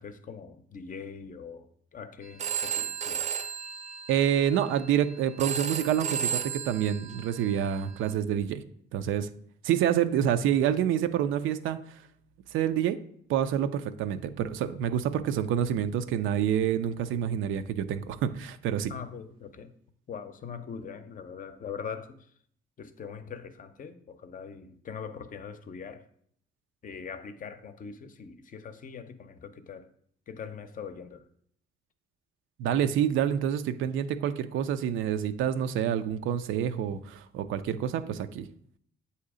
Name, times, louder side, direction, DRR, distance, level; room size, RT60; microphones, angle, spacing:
voice 1, 0.0-3.4 18.9-19.7 20.1-22.3 22.8-26.1 26.8-29.9 30.3-31.3, left 6 dB, 40° left, 0.6 m, -42 dB
Telephone, 2.2-8.1, right 8 dB, 35° right, 0.5 m, -35 dB
voice 2, 4.1-8.6 8.9-9.3 9.6-12.0 12.5-13.0 13.3-18.9 32.6-38.5, right 9 dB, 85° right, 0.4 m, -27 dB
7.8 x 2.8 x 4.8 m
cardioid pair, 90°, 20 cm